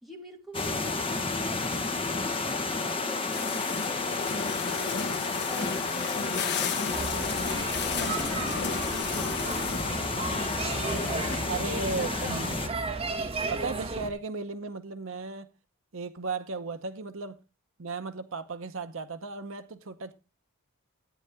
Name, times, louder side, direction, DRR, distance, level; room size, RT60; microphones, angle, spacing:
voice 1, 0.0-10.7 11.2-12.6, equal, ahead, 2.6 m, -45 dB
sound 1, 0.5-12.7, left 3 dB, 25° left, 1.1 m, -32 dB
sound 2, 3.3-11.4, left 5 dB, 50° left, 1.1 m, -34 dB
sound 3, 6.9-14.1, right 3 dB, 25° right, 1.7 m, -34 dB
voice 2, 11.5-12.6 13.5-15.5 15.9-17.4 17.8-20.1, right 3 dB, 65° right, 0.8 m, -35 dB
13.5 x 9.3 x 3.5 m
head